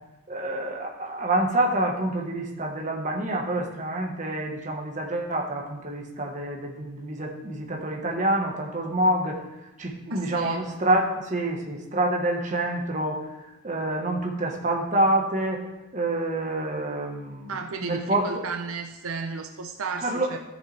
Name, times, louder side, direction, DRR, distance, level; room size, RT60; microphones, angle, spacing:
voice 1, 0.3-9.4 9.8-13.2 13.6-15.6 15.9-18.4 20.0-20.3, right 1 dB, 35° right, 0 dB, 1.3 m, -27 dB
voice 2, 10.1-10.6 17.5-20.4, right 4 dB, 75° right, 5 dB, 0.6 m, -33 dB
13.5 x 6.6 x 3.3 m, 1.0 s
head